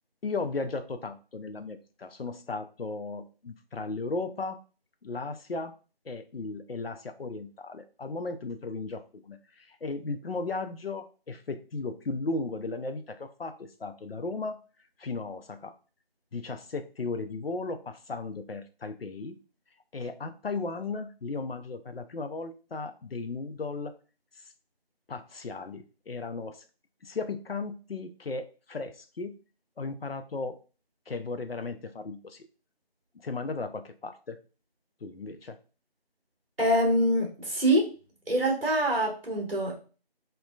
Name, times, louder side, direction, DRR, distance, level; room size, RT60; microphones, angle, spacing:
voice 1, 0.2-4.6 5.0-5.7 6.1-14.6 15.0-15.7 16.3-19.4 19.9-23.9 25.1-26.6 27.0-29.4 29.8-30.6 31.1-32.4 33.1-34.4 35.0-35.6, left 3 dB, 70° left, 9 dB, 0.4 m, -36 dB
voice 2, 36.6-37.9 38.3-39.8, equal, 65° right, -1 dB, 1.4 m, -25 dB
3.2 x 2.1 x 2.2 m, 0.35 s
figure-of-eight pair, 175°, 31 cm